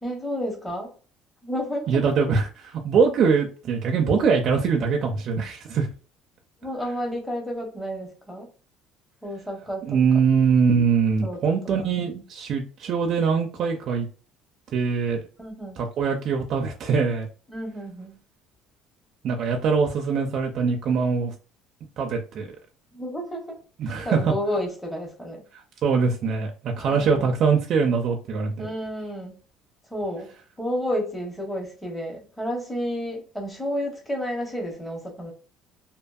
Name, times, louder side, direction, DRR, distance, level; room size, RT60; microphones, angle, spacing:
voice 1, 0.0-0.9 1.4-2.0 6.6-8.5 9.2-10.0 11.2-11.5 15.4-15.8 17.5-18.2 22.9-23.6 23.8-25.4 26.7-27.3 28.6-29.4 29.9-30.3 30.6-35.3, equal, 5° left, 0.7 m, -31 dB
voice 2, 1.9-5.9 9.9-14.1 14.7-15.2 15.8-17.3 19.2-21.3 22.0-22.5 23.8-24.2 25.8-28.7, right 5 dB, 45° right, 0.4 m, -23 dB
2.6 x 2.5 x 2.3 m
cardioid pair, 170°, 0 cm